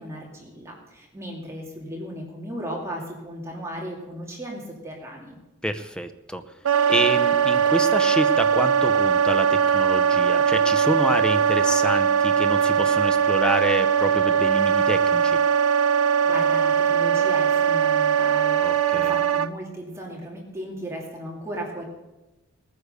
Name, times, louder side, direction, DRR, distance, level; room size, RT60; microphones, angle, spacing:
voice 1, 0.0-5.4 16.2-21.8, equal, 15° right, -2 dB, 2.6 m, -36 dB
voice 2, 5.6-6.4 6.9-15.4 18.6-19.1, equal, 5° left, 8 dB, 0.7 m, -28 dB
Wind instrument woodwind instrument, 6.6-19.5, right 7 dB, 90° right, 0.6 m, -20 dB
18.5 x 9.7 x 6.7 m, 1.1 s
head